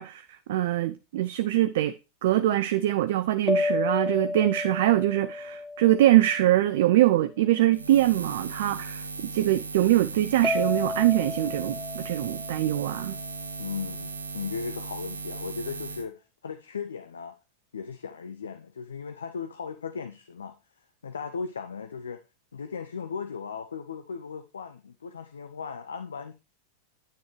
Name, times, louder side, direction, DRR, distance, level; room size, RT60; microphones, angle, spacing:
voice 1, 0.0-1.9 2.2-9.0 9.3-13.2, right 14 dB, 55° right, 0.5 m, -23 dB
sound 1, 3.5-7.0 10.4-13.5, left 3 dB, 10° left, 0.4 m, -32 dB
Buzz, 7.7-16.0, right 4 dB, 75° right, 0.9 m, -37 dB
voice 2, 13.6-17.4 17.7-20.6 21.0-22.2 22.5-26.3, left 5 dB, 70° left, 0.6 m, -37 dB
9.3 x 9.2 x 3.2 m
figure-of-eight pair, 90°, 0 cm